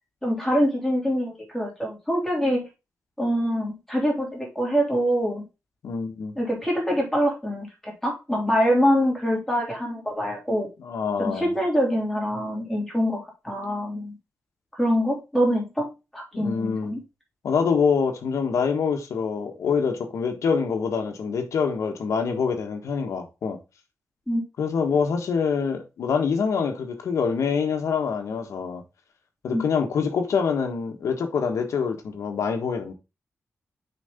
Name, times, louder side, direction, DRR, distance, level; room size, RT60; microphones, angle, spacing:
voice 1, 0.2-2.7 3.2-5.4 6.4-10.7 11.2-14.1 14.7-17.0 24.3-24.4 29.5-29.6, equal, 5° left, 3.2 m, -25 dB
voice 2, 5.8-6.3 10.8-11.5 16.3-17.0 17.4-23.6 24.6-28.8 29.4-32.9, left 6 dB, 90° left, 1.5 m, -25 dB
6.7 x 5.1 x 3.6 m
wide cardioid pair, 155°, 5 cm